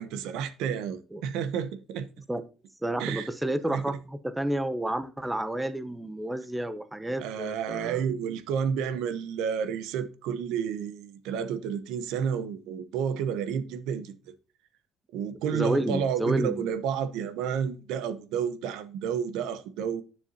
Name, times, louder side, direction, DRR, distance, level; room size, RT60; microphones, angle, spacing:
voice 1, 0.0-2.1 3.0-3.3 3.7-3.8 7.2-14.2 15.1-20.0, right 7 dB, 85° right, 1.0 m, -30 dB
voice 2, 2.8-8.0 15.5-16.7, right 1 dB, 5° right, 0.6 m, -30 dB
9.5 x 7.0 x 2.8 m
cardioid pair, 150°, 0 cm